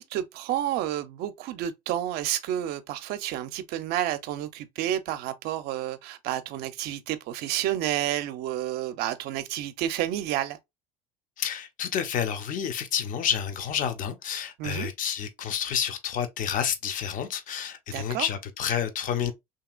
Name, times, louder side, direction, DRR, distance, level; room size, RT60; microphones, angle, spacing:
voice 1, 0.0-10.6 14.6-14.9 17.9-18.3, right 12 dB, 60° right, 0.5 m, -30 dB
voice 2, 11.4-19.3, left 8 dB, 45° left, 0.7 m, -29 dB
2.9 x 2.8 x 2.4 m
hypercardioid pair, 85°, 19 cm